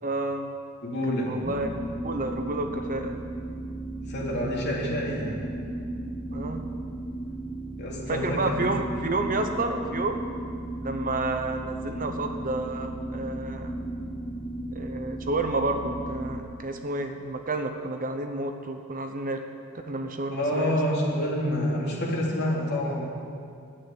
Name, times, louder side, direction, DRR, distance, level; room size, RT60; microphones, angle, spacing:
voice 1, 0.0-0.5 1.1-1.7 2.0-3.2 6.3-6.7 8.1-10.2 10.8-13.7 14.7-19.4 19.9-20.8, right 2 dB, 40° right, 6 dB, 0.9 m, -30 dB
voice 2, 0.8-1.3 4.0-5.4 7.8-8.4 20.3-23.0, left 1 dB, 50° left, -4 dB, 3.2 m, -27 dB
sound 1, 1.4-16.4, right 1 dB, 10° left, 0.8 m, -35 dB
11.0 x 9.1 x 9.8 m, 2.3 s
head